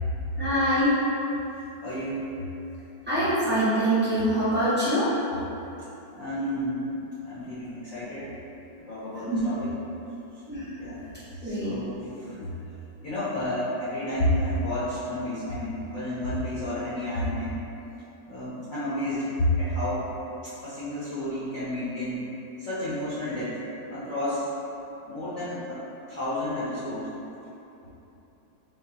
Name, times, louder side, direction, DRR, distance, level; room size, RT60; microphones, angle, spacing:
voice 1, 0.4-0.9 3.1-5.1 9.3-9.4 10.5-10.6 11.4-11.8, equal, 10° right, -13 dB, 0.5 m, -24 dB
voice 2, 1.8-2.3 6.1-6.9 7.2-8.3 8.9-9.8 10.8-11.0 11.4-12.5 13.0-17.6 18.3-20.1 20.4-22.2 22.6-23.6 23.9-24.5 25.1-25.8 26.1-27.1, left 1 dB, 60° left, -12 dB, 1.0 m, -30 dB
4.1 x 2.9 x 2.8 m, 3.0 s
omnidirectional pair, 2.0 m